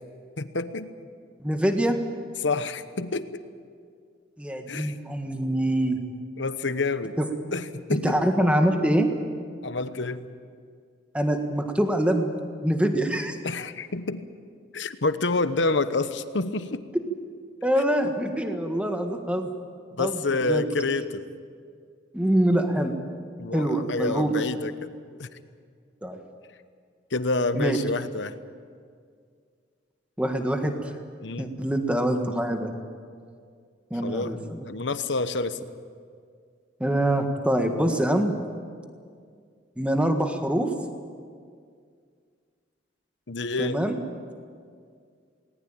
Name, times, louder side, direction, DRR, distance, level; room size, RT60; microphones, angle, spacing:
voice 1, 0.4-0.9 2.4-3.4 4.7-5.0 6.4-7.2 7.5-8.2 9.6-10.3 13.4-14.3 14.7-16.8 19.9-21.2 23.4-24.9 25.2-25.3 27.1-28.3 31.2-31.5 34.0-35.6 43.3-43.8, left 3 dB, 75° left, 12 dB, 1.0 m, -28 dB
voice 2, 1.4-2.0 4.4-6.0 7.2-7.3 8.0-9.1 11.1-12.3 12.6-13.4 17.6-19.5 20.0-20.6 22.1-22.9 23.5-24.3 26.0-26.2 27.5-27.8 30.2-30.9 31.4-32.7 33.9-34.6 36.8-38.3 39.8-40.7 43.6-44.0, right 1 dB, 5° right, 5 dB, 1.6 m, -24 dB
19.5 x 19.5 x 8.9 m, 2.1 s
head